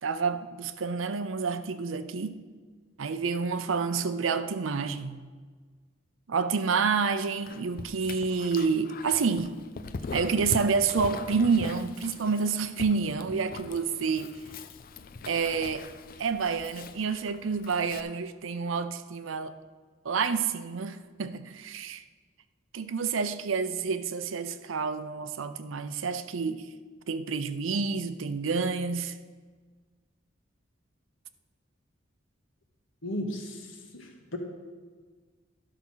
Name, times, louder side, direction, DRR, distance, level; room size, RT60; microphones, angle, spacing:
voice 1, 0.0-2.4 3.0-5.2 6.3-9.5 10.1-14.3 15.3-15.9 16.2-19.5 20.0-22.0 22.7-26.6 27.1-29.1, right 5 dB, 85° right, 0.6 m, -29 dB
Dog, 7.4-18.0, left 4 dB, 50° left, 0.5 m, -41 dB
voice 2, 33.0-34.4, equal, 80° left, 1.6 m, -36 dB
12.0 x 5.9 x 5.7 m
head